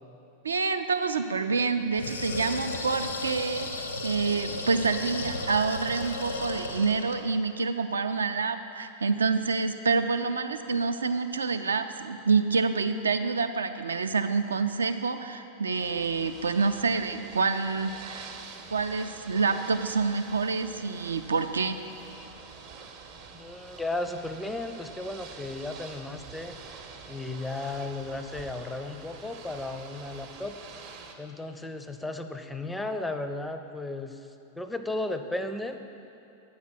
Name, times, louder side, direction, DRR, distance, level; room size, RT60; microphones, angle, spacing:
voice 1, 0.4-18.3 18.7-21.8, right 4 dB, 75° right, 9 dB, 0.4 m, -27 dB
sound 1, 1.9-7.3, left 2 dB, 75° left, 0.7 m, -34 dB
Ocean / Boat Water vehicle, 15.8-31.1, right 5 dB, 45° right, 0.7 m, -46 dB
voice 2, 23.3-30.6 31.2-34.3 34.6-35.8, left 2 dB, 5° left, 8 dB, 0.4 m, -35 dB
8.4 x 4.7 x 6.1 m, 2.8 s
figure-of-eight pair, 90°, 0 cm